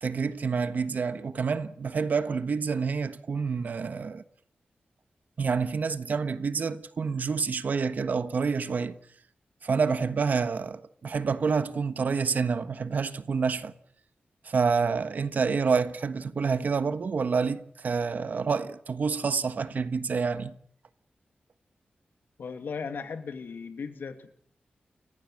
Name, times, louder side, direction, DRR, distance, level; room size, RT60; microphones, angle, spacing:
voice 1, 0.0-4.2 5.4-9.0 9.6-13.7 14.4-20.5, right 5 dB, 55° right, 1.3 m, -28 dB
voice 2, 22.4-24.4, left 5 dB, 80° left, 2.4 m, -37 dB
29.5 x 15.0 x 7.6 m
wide cardioid pair, 175°, 3 cm